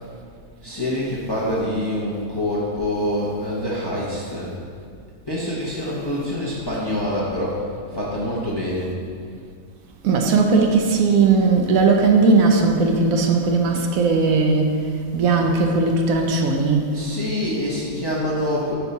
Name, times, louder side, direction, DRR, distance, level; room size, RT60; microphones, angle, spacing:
voice 1, 0.6-4.5 5.3-8.9 16.9-18.7, left 1 dB, 25° left, -6 dB, 0.6 m, -26 dB
voice 2, 10.0-14.7 15.1-16.9, right 4 dB, 75° right, 3 dB, 1.0 m, -18 dB
4.5 x 4.0 x 5.3 m, 2.3 s
omnidirectional pair, 1.5 m